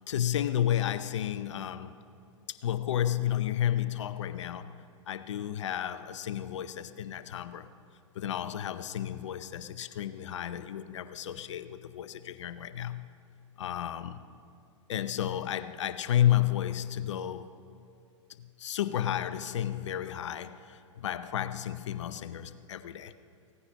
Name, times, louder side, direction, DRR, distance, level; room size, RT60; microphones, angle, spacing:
voice 1, 0.1-1.9 2.5-7.7 8.1-13.1 13.6-14.2 14.9-17.5 18.4-23.1, left 11 dB, 65° left, 0.8 m, -32 dB
16.5 x 9.8 x 5.4 m
hypercardioid pair, 115°, 16 cm